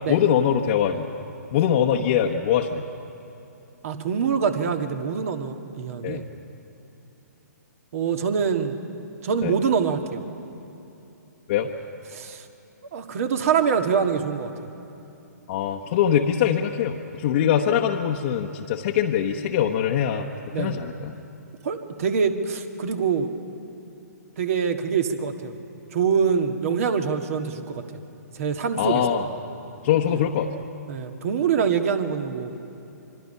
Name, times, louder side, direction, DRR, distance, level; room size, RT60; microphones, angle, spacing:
voice 1, 0.1-1.1 1.5-2.8 6.0-6.2 9.4-9.5 11.5-11.7 15.5-20.3 20.6-21.1 28.8-29.2 29.8-30.5, left 9 dB, 45° left, 0 dB, 1.1 m, -22 dB
voice 2, 3.8-6.2 7.9-8.8 9.2-10.2 12.1-12.5 12.9-14.5 20.5-20.8 21.6-23.3 24.4-25.5 25.9-27.8 28.3-29.0 30.1-30.2 30.9-32.6, right 6 dB, 55° right, 6 dB, 1.7 m, -24 dB
27.0 x 23.0 x 5.6 m, 2.9 s
hypercardioid pair, 130°, 9 cm